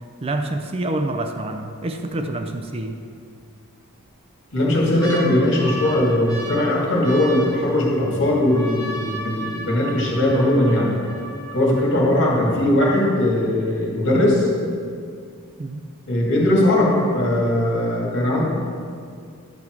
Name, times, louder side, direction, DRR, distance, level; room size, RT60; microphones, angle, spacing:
voice 1, 0.2-3.0 15.6-15.8, right 2 dB, 25° right, 6 dB, 0.5 m, -27 dB
sound 1, 4.0-4.1 4.5-12.4 13.2-13.3 13.4-13.9 14.4-14.5, right 1 dB, 15° left, 1.7 m, -35 dB
voice 2, 4.5-10.9 11.5-14.5 16.1-18.4, left 1 dB, 55° left, -4 dB, 2.2 m, -19 dB
10.5 x 7.3 x 4.6 m, 2.3 s
head